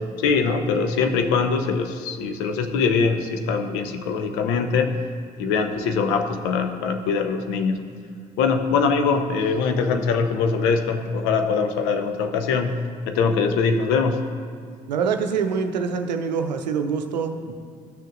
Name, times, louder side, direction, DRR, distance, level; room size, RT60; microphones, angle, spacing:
voice 1, 0.0-4.9 5.4-7.9 8.4-12.7 13.1-14.2, left 5 dB, 70° left, 7 dB, 0.7 m, -22 dB
voice 2, 14.9-17.6, right 6 dB, 90° right, 6 dB, 0.6 m, -25 dB
13.5 x 6.4 x 2.5 m, 2.2 s
hypercardioid pair, 55°, 21 cm